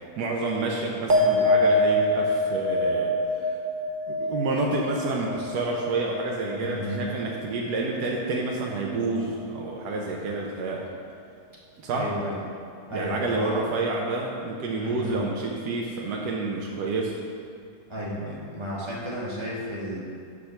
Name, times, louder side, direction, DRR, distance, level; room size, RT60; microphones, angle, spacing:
voice 1, 0.0-3.6 4.1-10.9 11.8-12.1 12.9-17.1, right 3 dB, 90° right, -2 dB, 1.3 m, -29 dB
sound 1, 1.1-7.8 8.1-8.7, left 1 dB, 40° right, 0.7 m, -25 dB
voice 2, 6.5-7.0 11.9-12.4 12.9-13.6 14.8-15.2 17.9-20.0, equal, 20° right, -5 dB, 1.3 m, -33 dB
6.6 x 4.9 x 5.8 m, 2.4 s
omnidirectional pair, 1.7 m